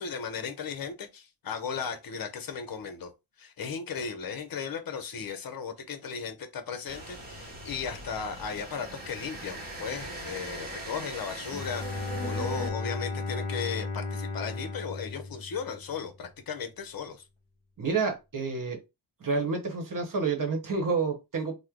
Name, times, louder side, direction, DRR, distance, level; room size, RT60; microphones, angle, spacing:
voice 1, 0.0-3.1 3.4-17.2, left 6 dB, 45° left, 0.7 m, -36 dB
sound 1, 6.9-12.7, right 1 dB, 20° right, 1.2 m, -40 dB
Bowed string instrument, 11.5-16.2, left 3 dB, 15° left, 0.9 m, -35 dB
voice 2, 17.8-18.8 19.2-21.5, right 4 dB, 40° right, 1.1 m, -29 dB
3.1 x 2.1 x 3.6 m
wide cardioid pair, 155°, 48 cm